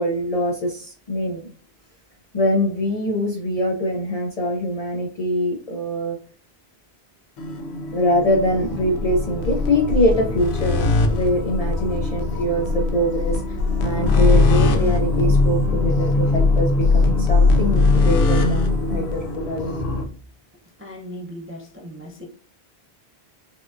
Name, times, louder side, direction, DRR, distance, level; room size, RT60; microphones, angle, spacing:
voice 1, 0.0-1.5 2.3-6.2 7.9-13.4 13.8-19.9, equal, 50° left, 0 dB, 0.4 m, -23 dB
sound 1, 7.4-20.0, left 3 dB, 80° left, 0.8 m, -20 dB
voice 2, 20.8-22.3, equal, 20° right, -1 dB, 0.3 m, -37 dB
4.2 x 2.4 x 2.4 m, 0.42 s
omnidirectional pair, 1.1 m